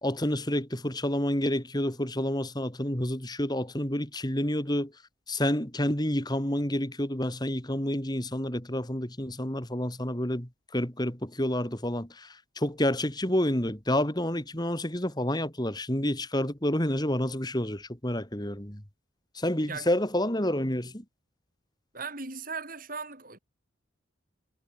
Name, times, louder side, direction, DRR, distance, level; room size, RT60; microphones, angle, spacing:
voice 1, 0.0-4.9 5.3-18.8 19.3-21.0, left 1 dB, 20° left, 2.7 m, -29 dB
voice 2, 21.9-23.4, right 4 dB, 40° right, 5.0 m, -38 dB
head